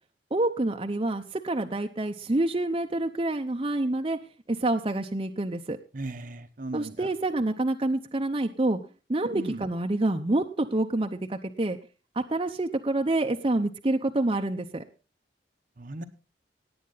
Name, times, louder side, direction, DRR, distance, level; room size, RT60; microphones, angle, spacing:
voice 1, 0.3-4.2 4.5-5.8 6.7-8.8 9.1-11.8 12.2-14.8, right 2 dB, 30° right, 5 dB, 0.7 m, -27 dB
voice 2, 5.9-6.9 9.3-9.6 15.8-16.0, right 2 dB, 50° right, 9 dB, 1.0 m, -36 dB
18.0 x 8.5 x 3.9 m, 0.33 s
head